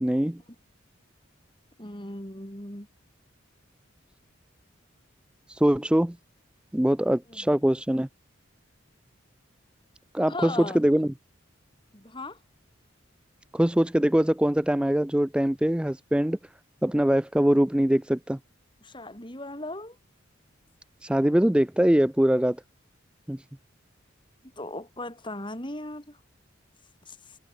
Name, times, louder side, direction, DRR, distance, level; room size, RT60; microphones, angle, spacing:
voice 1, 0.0-0.4 5.5-6.2 6.7-8.1 10.1-11.1 13.5-16.4 16.8-18.4 21.0-22.6 23.3-23.4, right 1 dB, 5° right, 0.4 m, -23 dB
voice 2, 1.8-2.9 7.3-7.7 10.2-10.8 11.9-12.4 18.8-20.0 24.4-26.2 27.1-27.4, left 2 dB, 25° left, 6.9 m, -38 dB
head